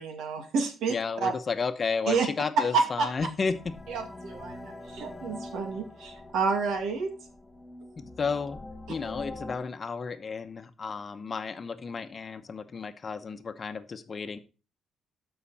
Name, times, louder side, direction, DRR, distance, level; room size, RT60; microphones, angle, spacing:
voice 1, 0.0-0.9 1.2-1.3 2.1-2.3 2.7-3.1 3.9-7.1, right 5 dB, 80° right, 5 dB, 2.2 m, -29 dB
voice 2, 0.9-3.8 8.0-8.6 8.9-14.4, left 5 dB, 40° left, 10 dB, 0.9 m, -32 dB
sound 1, 3.5-9.6, left 2 dB, 15° left, 2.2 m, -44 dB
12.5 x 5.7 x 4.2 m, 0.33 s
cardioid pair, 90°, 0 cm